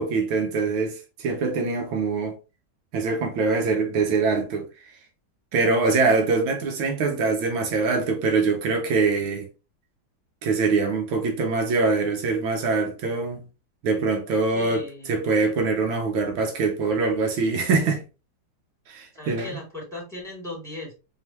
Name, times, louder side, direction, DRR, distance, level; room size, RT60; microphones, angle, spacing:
voice 1, 0.0-2.3 2.9-4.7 5.5-9.5 10.4-13.4 13.8-18.0 18.9-19.6, right 4 dB, 75° right, 1.6 m, -23 dB
voice 2, 14.5-15.2 19.1-20.9, left 1 dB, ahead, 2.3 m, -37 dB
3.7 x 3.6 x 2.9 m
omnidirectional pair, 2.2 m